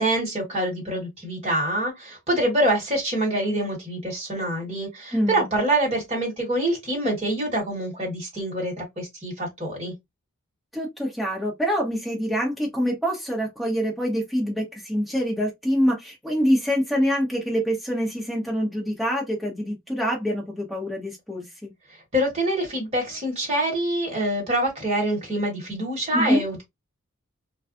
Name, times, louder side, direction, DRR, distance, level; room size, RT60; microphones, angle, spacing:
voice 1, 0.0-9.9 21.9-26.6, right 1 dB, 30° right, 1.3 m, -25 dB
voice 2, 5.1-5.5 10.7-21.7 26.1-26.4, equal, ahead, 1.0 m, -25 dB
2.4 x 2.3 x 2.5 m
head